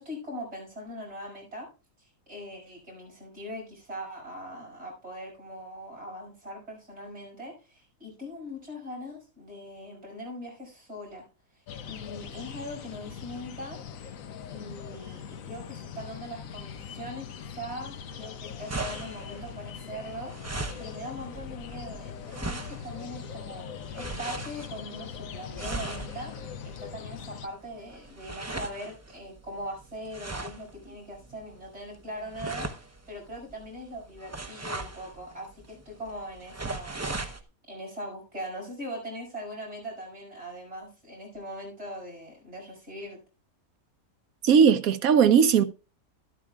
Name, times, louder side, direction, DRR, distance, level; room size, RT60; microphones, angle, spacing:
voice 1, 0.0-1.7 2.0-11.2 11.8-13.8 14.5-23.7 23.9-26.3 26.6-37.0 37.7-43.2, equal, 50° right, 5.9 m, -41 dB
sound 1, 11.7-27.5, left 7 dB, 70° left, 1.2 m, -41 dB
sound 2, 18.0-37.4, right 2 dB, 20° right, 0.4 m, -40 dB
voice 2, 44.4-45.6, right 7 dB, 75° right, 1.3 m, -18 dB
13.0 x 12.0 x 2.3 m
omnidirectional pair, 1.5 m